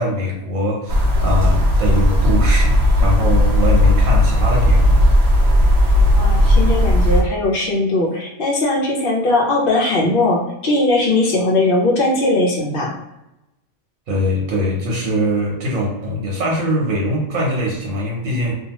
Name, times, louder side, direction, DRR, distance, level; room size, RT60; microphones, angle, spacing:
voice 1, 0.0-5.0 14.1-18.5, equal, 80° right, -3 dB, 1.2 m, -22 dB
sound 1, 0.9-7.2, left 1 dB, 60° right, 0.8 m, -14 dB
voice 2, 6.2-12.9, left 2 dB, 55° left, -1 dB, 0.6 m, -19 dB
2.7 x 2.3 x 2.9 m, 0.93 s
omnidirectional pair, 1.4 m